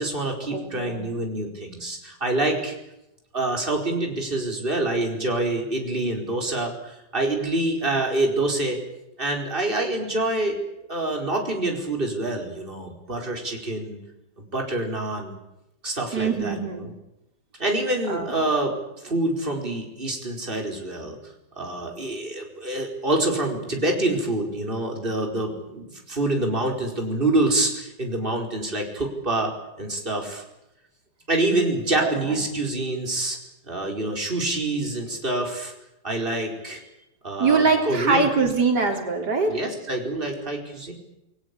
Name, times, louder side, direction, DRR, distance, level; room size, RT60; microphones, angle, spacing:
voice 1, 0.0-2.7 3.3-8.8 9.2-10.6 10.9-14.0 14.5-15.3 15.8-16.9 17.6-21.2 21.6-29.5 29.8-30.4 31.3-33.4 33.7-35.7 36.0-36.8 37.2-38.5 39.5-40.9, right 2 dB, 30° right, 2 dB, 5.0 m, -26 dB
voice 2, 0.5-1.0 16.1-16.9 18.1-18.3 32.0-32.4 37.4-39.5, right 4 dB, 90° right, 3 dB, 4.3 m, -23 dB
28.0 x 19.5 x 8.5 m, 0.87 s
omnidirectional pair, 1.7 m